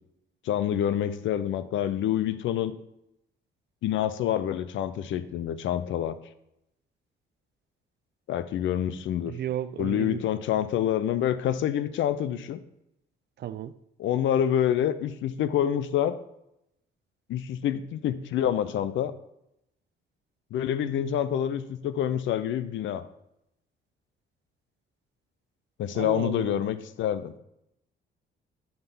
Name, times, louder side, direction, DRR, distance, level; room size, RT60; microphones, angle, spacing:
voice 1, 0.4-2.7 3.8-6.2 8.3-9.3 9.8-12.6 14.0-16.2 17.3-19.1 20.5-23.1 25.8-27.3, left 10 dB, 75° left, 0.6 m, -27 dB
voice 2, 9.3-10.2 13.4-13.7 25.9-26.7, right 11 dB, 55° right, 0.4 m, -34 dB
7.9 x 3.4 x 5.5 m
cardioid pair, 90°, 20 cm